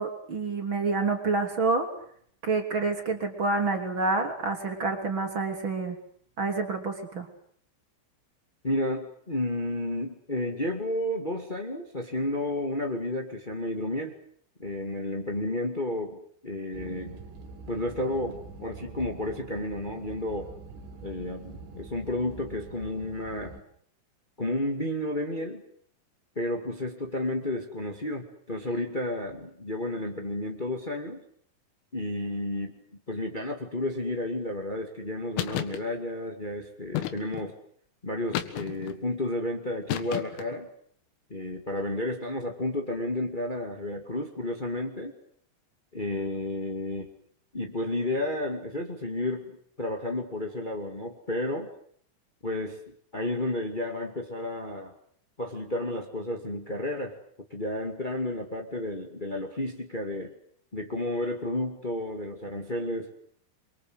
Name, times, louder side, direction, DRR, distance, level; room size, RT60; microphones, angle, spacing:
voice 1, 0.0-1.9 2.4-6.0 6.4-7.3, right 3 dB, 30° right, 4 dB, 3.5 m, -28 dB
voice 2, 8.6-14.1 14.6-17.2 17.7-20.5 21.0-23.5 24.4-25.6 26.3-31.2 31.9-32.8 33.1-37.5 38.0-40.7 41.3-45.1 45.9-47.1 47.5-51.7 52.4-52.8 53.1-54.9 55.4-57.1 57.5-60.3 60.7-63.1, left 1 dB, 70° left, 4 dB, 0.4 m, -32 dB
sound 1, 16.7-23.6, right 3 dB, 70° right, 5.3 m, -45 dB
sound 2, 35.4-35.8 36.9-37.5 38.3-39.0 39.9-40.5, left 13 dB, 85° left, 4.3 m, -32 dB
28.0 x 24.0 x 8.1 m, 0.62 s
omnidirectional pair, 5.7 m